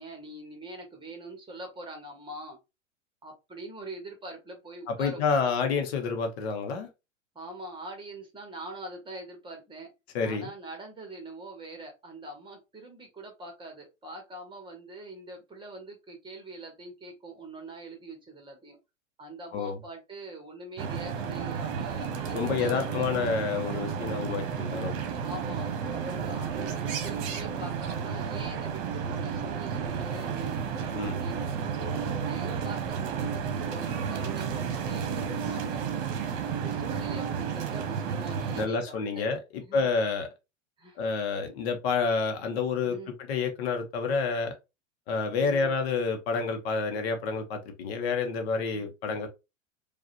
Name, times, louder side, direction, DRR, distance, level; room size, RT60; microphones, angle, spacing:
voice 1, 0.0-2.6 3.2-5.2 7.3-9.9 10.2-18.8 19.2-23.2 25.2-31.6 32.0-35.8 36.4-39.3 39.6-39.9 40.8-41.0 42.8-43.1 45.4-45.8 48.7-48.9, right 2 dB, 10° right, 1.4 m, -43 dB
voice 2, 4.9-6.9 10.1-10.5 19.5-19.8 22.3-25.0 30.9-31.3 38.6-40.3 41.0-44.5 45.1-49.3, left 5 dB, 50° left, 1.0 m, -29 dB
sound 1, 20.8-38.7, right 7 dB, 45° right, 1.1 m, -32 dB
4.7 x 2.5 x 2.7 m
figure-of-eight pair, 95°, 39 cm